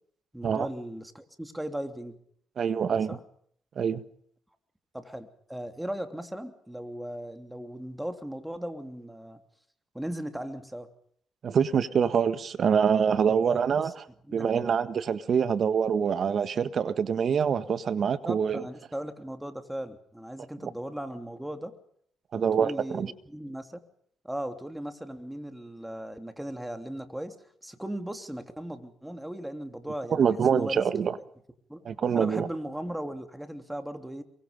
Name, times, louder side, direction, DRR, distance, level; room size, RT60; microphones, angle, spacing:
voice 1, 0.3-2.1 3.1-3.2 4.9-9.4 9.9-10.9 13.3-13.9 14.3-14.8 18.2-21.7 22.3-23.8 24.2-27.3 27.6-30.2 30.5-30.8 31.7-31.8 32.1-34.2, right 1 dB, 5° right, 3.1 m, -37 dB
voice 2, 2.6-3.2 3.7-4.0 11.4-13.9 14.3-18.6 20.6-20.7 22.3-23.1 30.1-31.2 31.8-32.5, right 7 dB, 55° right, 1.6 m, -25 dB
27.5 x 23.5 x 5.3 m
cardioid pair, 90°, 0 cm